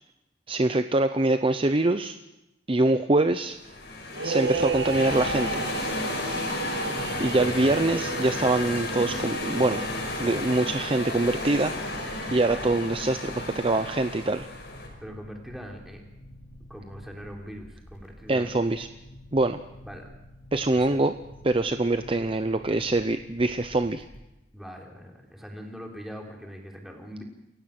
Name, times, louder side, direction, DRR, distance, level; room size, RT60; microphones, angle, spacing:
voice 1, 0.5-2.2 2.7-3.6 4.2-5.6 7.2-9.8 10.2-12.0 12.3-14.5 18.3-18.9 19.3-19.6 20.5-21.1 21.4-24.0, right 2 dB, 30° right, 9 dB, 0.7 m, -24 dB
sound 1, 3.5-14.9, left 2 dB, 70° left, 6.0 m, -33 dB
sound 2, 4.1-12.7, right 3 dB, 70° right, 1.7 m, -34 dB
sound 3, 4.4-24.2, left 1 dB, 50° left, 4.3 m, -48 dB
voice 2, 7.4-7.8 15.0-16.0 16.7-18.5 19.8-20.0 20.7-21.0 24.5-27.2, equal, ahead, 0 dB, 3.5 m, -41 dB
28.5 x 15.5 x 6.0 m, 0.95 s
head